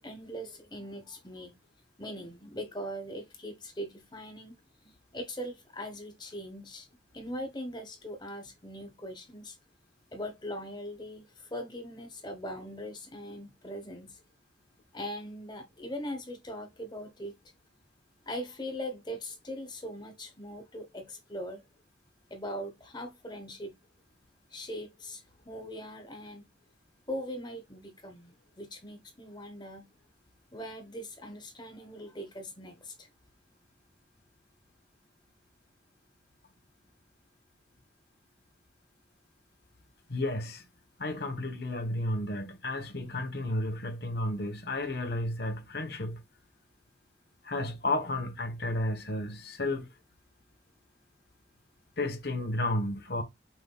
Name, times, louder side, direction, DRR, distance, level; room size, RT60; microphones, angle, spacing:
voice 1, 0.0-1.5 2.0-4.5 4.8-6.9 7.1-9.6 10.1-14.2 14.9-17.3 18.3-21.6 22.3-23.7 24.5-26.5 27.1-29.9 30.5-33.1, equal, 25° left, 0.9 m, -41 dB
voice 2, 40.1-40.6 41.0-46.2 47.4-49.9 52.0-53.2, left 1 dB, 55° left, 1.1 m, -32 dB
6.0 x 3.5 x 2.3 m
head